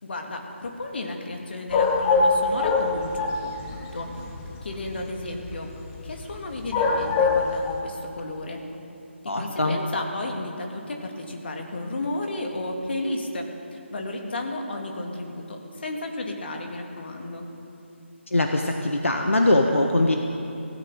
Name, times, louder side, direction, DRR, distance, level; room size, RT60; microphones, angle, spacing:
voice 1, 0.0-4.1 4.6-5.7 6.0-8.6 9.2-17.4, left 2 dB, 55° left, 2 dB, 2.5 m, -33 dB
sound 1, 1.7-7.8, left 4 dB, 15° left, 1.1 m, -24 dB
voice 2, 9.3-9.8 18.3-20.2, left 2 dB, 80° left, 3 dB, 1.3 m, -22 dB
17.0 x 15.5 x 5.1 m, 2.8 s
figure-of-eight pair, 150°, 7 cm